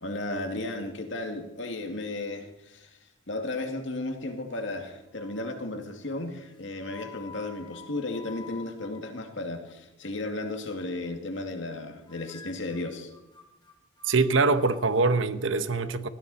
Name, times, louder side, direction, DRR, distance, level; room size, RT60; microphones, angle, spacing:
voice 1, 0.0-3.0 3.3-13.1, left 2 dB, 60° left, 2.3 m, -34 dB
sound 1, 4.2-4.8 5.1-5.7 6.4-9.7 10.0-10.4 10.8-11.1 11.3-11.8 12.1-15.1, left 6 dB, 25° left, 2.4 m, -51 dB
voice 2, 14.0-16.1, right 3 dB, 70° right, 1.0 m, -24 dB
20.0 x 14.5 x 4.2 m
head